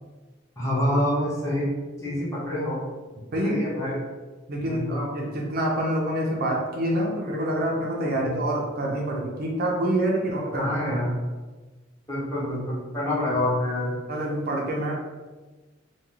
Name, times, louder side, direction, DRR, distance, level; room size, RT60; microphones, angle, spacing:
voice 1, 0.6-1.7 2.0-2.8 3.4-3.9 4.7-5.1 8.1-8.3 10.5-11.1 12.1-14.0, left 1 dB, 15° left, -7 dB, 0.7 m, -27 dB
voice 2, 4.5-11.1 14.1-14.9, right 1 dB, 50° right, -1 dB, 0.5 m, -26 dB
2.3 x 2.2 x 3.0 m, 1.3 s
head